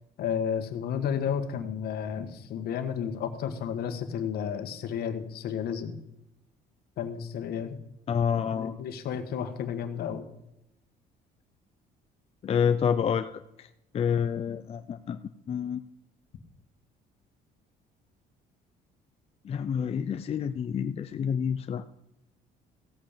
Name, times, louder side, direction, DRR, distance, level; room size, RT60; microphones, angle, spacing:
voice 1, 0.2-6.0 7.0-7.8 8.5-10.2, left 8 dB, 70° left, 8 dB, 1.6 m, -32 dB
voice 2, 8.1-8.7 12.4-13.3 13.6-13.7 13.9-15.2 15.5-15.8 19.4-21.8, left 7 dB, 35° left, 9 dB, 0.5 m, -28 dB
15.5 x 8.0 x 5.1 m, 0.84 s
cardioid pair, 110°, 17 cm